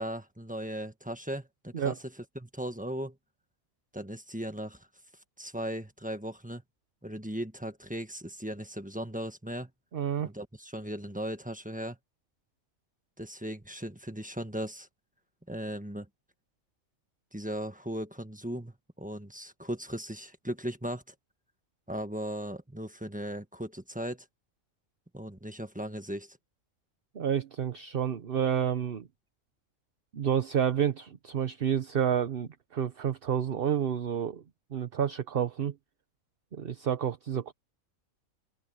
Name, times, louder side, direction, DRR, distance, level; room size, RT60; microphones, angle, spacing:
voice 1, 0.0-2.0 2.3-3.1 3.9-4.9 5.4-6.6 7.0-9.7 10.2-12.0 13.2-14.9 15.5-16.1 17.3-21.0 21.9-24.2 25.1-26.4, equal, 5° right, 1.4 m, -37 dB
voice 2, 9.9-10.3 27.1-29.1 30.1-34.4 34.7-35.7 36.5-37.5, right 8 dB, 45° right, 1.0 m, -29 dB
open air
omnidirectional pair, 1.4 m